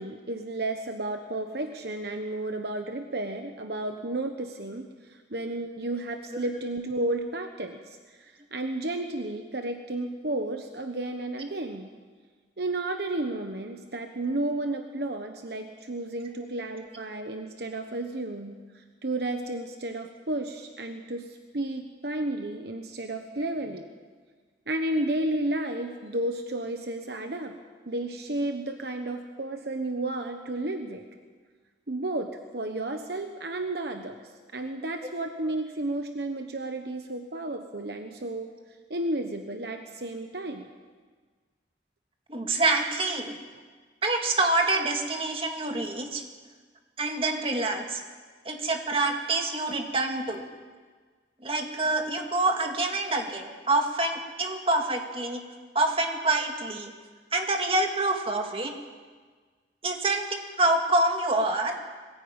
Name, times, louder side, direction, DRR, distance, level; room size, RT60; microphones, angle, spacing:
voice 1, 0.0-11.9 12.6-23.9 24.7-27.5 27.9-31.0 31.9-34.2 34.5-38.5 38.9-40.7, right 2 dB, 60° right, 5 dB, 1.2 m, -32 dB
voice 2, 42.3-43.4 44.0-46.2 47.0-48.0 48.4-50.5 51.4-55.4 55.7-56.9 57.3-58.7 59.8-61.8, right 2 dB, 30° right, 3 dB, 2.2 m, -26 dB
21.0 x 16.0 x 8.9 m, 1.5 s
head